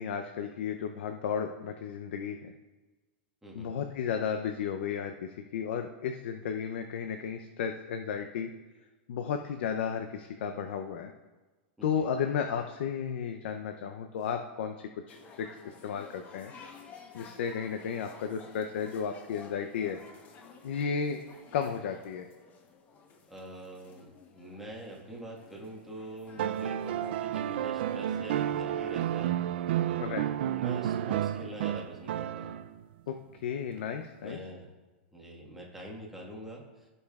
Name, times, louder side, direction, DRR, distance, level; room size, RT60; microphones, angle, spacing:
voice 1, 0.0-2.5 3.5-8.5 9.1-11.1 11.8-16.5 17.1-20.0 20.6-21.2 21.5-22.3 30.0-30.3 33.1-33.2 33.4-34.4, left 7 dB, 70° left, 5 dB, 0.6 m, -33 dB
voice 2, 3.4-3.7 11.8-12.1 23.3-24.1 24.3-29.3 30.4-32.5 34.2-34.7 35.1-36.6, right 1 dB, 5° right, -3 dB, 1.5 m, -44 dB
sound 1, 15.1-28.6, left 5 dB, 25° left, 0.9 m, -53 dB
sound 2, 26.4-32.8 34.3-34.4, right 11 dB, 65° right, 0.4 m, -31 dB
16.0 x 5.4 x 2.4 m, 1.2 s
supercardioid pair, 145°, 6 cm